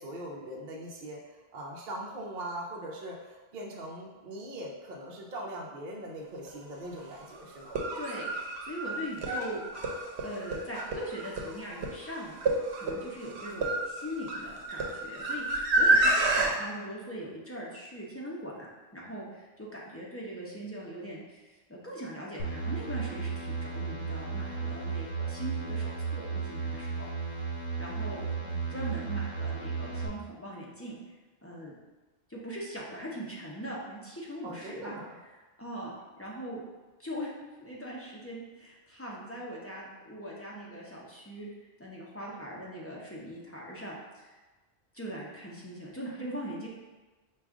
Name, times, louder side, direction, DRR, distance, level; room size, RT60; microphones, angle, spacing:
voice 1, 0.0-7.8 28.0-28.8 34.4-35.2, right 1 dB, 55° right, -2 dB, 0.7 m, -41 dB
sound 1, 6.5-6.6 7.6-16.5, right 2 dB, 75° right, 0.9 m, -29 dB
voice 2, 8.6-9.6 10.2-18.7 18.9-27.1 27.8-28.3 28.7-31.0 31.4-31.7 32.3-35.0 35.6-35.9 36.2-36.6 37.0-37.3 37.6-41.5 41.8-44.3 44.9-46.7, equal, 15° left, -5 dB, 0.6 m, -41 dB
sound 2, 22.4-30.1, right 4 dB, 60° left, 1.0 m, -34 dB
4.9 x 2.3 x 3.6 m, 1.2 s
omnidirectional pair, 1.1 m